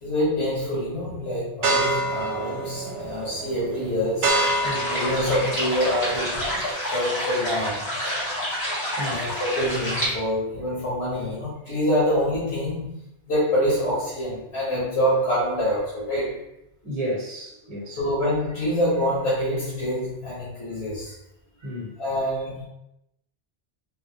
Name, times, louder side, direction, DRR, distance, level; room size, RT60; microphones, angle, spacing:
voice 1, 0.0-4.3 4.9-6.4 6.9-7.9 9.1-12.9 13.3-16.4 18.0-21.1 21.6-21.7 22.0-22.6, equal, 85° left, -8 dB, 1.3 m, -26 dB
sound 1, 1.6-6.7, right 2 dB, 70° right, 0.9 m, -27 dB
sound 2, 4.3-10.1, equal, 40° left, 1.4 m, -28 dB
voice 2, 4.6-4.9 9.0-9.3 16.8-18.0 21.6-21.9, equal, 35° right, -5 dB, 1.0 m, -32 dB
3.8 x 2.1 x 2.8 m, 0.84 s
omnidirectional pair, 1.1 m